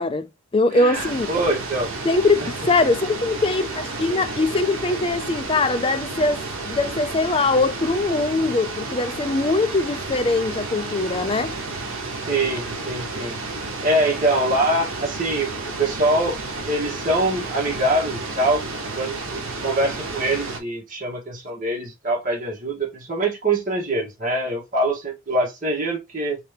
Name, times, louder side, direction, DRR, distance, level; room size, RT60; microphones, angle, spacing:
voice 1, 0.0-1.3 2.0-11.5, left 3 dB, 25° left, 0.4 m, -22 dB
voice 2, 0.7-1.9 12.3-13.4 13.8-16.4 16.6-18.6 19.0-26.4, right 1 dB, 40° right, 1.6 m, -24 dB
sound 1, 0.9-20.6, right 3 dB, 70° right, 1.0 m, -31 dB
3.3 x 3.3 x 3.3 m
head